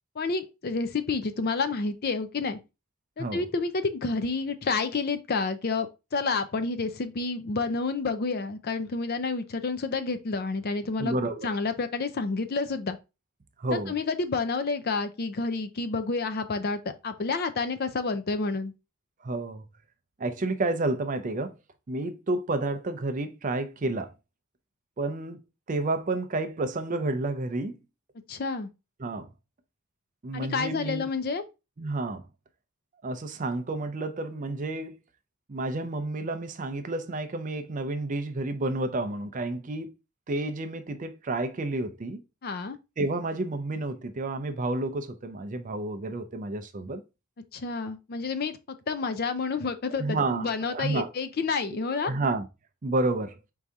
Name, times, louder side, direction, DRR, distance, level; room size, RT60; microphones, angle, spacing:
voice 1, 0.2-2.6 3.2-11.1 11.4-13.0 13.7-18.7 28.3-28.7 30.3-31.4 42.4-42.8 47.5-48.6 48.9-52.1, left 4 dB, 45° left, 0.5 m, -29 dB
voice 2, 11.0-11.5 13.6-13.9 19.2-19.6 20.2-21.6 21.9-24.1 25.0-27.8 29.0-29.3 30.2-31.1 31.8-32.2 33.0-35.0 35.5-39.9 40.3-42.2 43.0-47.0 49.9-51.1 51.6-51.8 52.0-52.5 52.8-53.4, right 2 dB, 35° right, 0.4 m, -30 dB
4.6 x 2.7 x 3.4 m
head